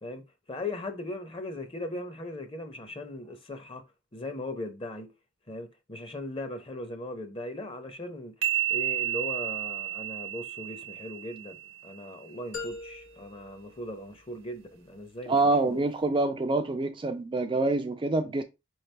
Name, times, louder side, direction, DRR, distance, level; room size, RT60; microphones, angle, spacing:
voice 1, 0.0-3.8 4.1-5.1 5.5-8.3 8.7-11.6 11.8-15.4 15.6-15.8, left 1 dB, 25° left, 0.7 m, -38 dB
sound 1, 8.4-12.0, right 12 dB, 85° right, 0.8 m, -32 dB
sound 2, 12.5-14.6, left 4 dB, 90° left, 1.5 m, -42 dB
voice 2, 15.3-18.4, right 2 dB, 25° right, 0.3 m, -26 dB
4.7 x 3.2 x 3.2 m
head